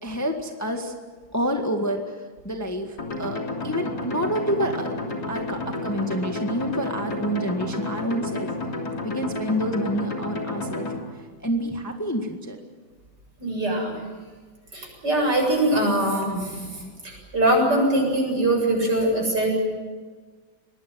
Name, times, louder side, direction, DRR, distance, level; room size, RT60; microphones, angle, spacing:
voice 1, 0.0-0.9 1.3-4.9 5.3-8.5 9.0-10.9 11.4-12.6, equal, 10° left, 4 dB, 1.6 m, -28 dB
sound 1, 3.0-11.0, left 2 dB, 55° left, 3.7 m, -31 dB
voice 2, 13.4-14.0 14.7-19.5, right 1 dB, 60° right, 1 dB, 8.2 m, -22 dB
24.0 x 20.0 x 9.5 m, 1.4 s
omnidirectional pair, 2.1 m